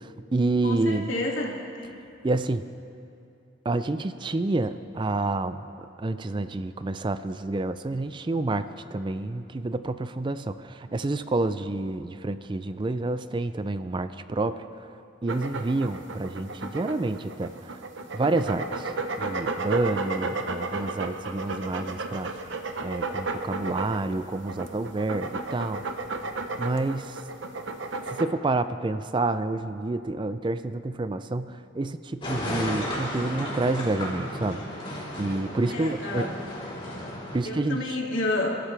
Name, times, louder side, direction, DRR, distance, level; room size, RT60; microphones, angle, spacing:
voice 1, 0.0-1.1 2.2-2.7 3.7-5.7 6.0-14.6 15.2-17.8 18.1-18.9 19.2-22.5 22.8-25.8 26.6-27.2 28.1-34.6 35.2-36.3 37.3-38.0, right 2 dB, 25° right, 12 dB, 0.4 m, -28 dB
voice 2, 0.6-1.9 35.7-36.4 37.4-38.5, left 2 dB, 85° left, -2 dB, 2.5 m, -30 dB
sound 1, 15.3-28.2, right 3 dB, 70° right, 0.9 m, -33 dB
sound 2, 32.2-37.4, left 1 dB, 30° left, 3.6 m, -34 dB
29.5 x 13.0 x 3.4 m, 2.6 s
head